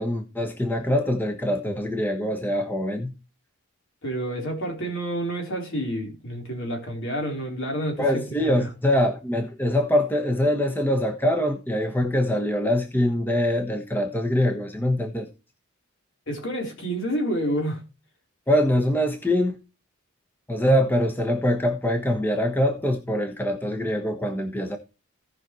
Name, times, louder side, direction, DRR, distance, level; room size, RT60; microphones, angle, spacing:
voice 1, 0.0-3.1 8.0-15.3 18.5-19.6 20.5-24.8, left 1 dB, 10° left, 1.2 m, -23 dB
voice 2, 4.0-8.7 16.3-17.8, right 1 dB, 60° left, 4.0 m, -29 dB
17.5 x 5.9 x 3.1 m
head